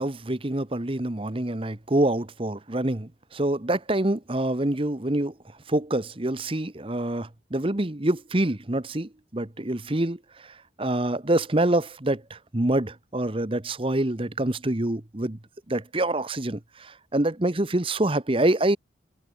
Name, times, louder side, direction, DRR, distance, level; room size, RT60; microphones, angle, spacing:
voice 1, 0.0-5.3 5.7-15.4 15.7-18.8, right 1 dB, 30° right, 1.1 m, -26 dB
head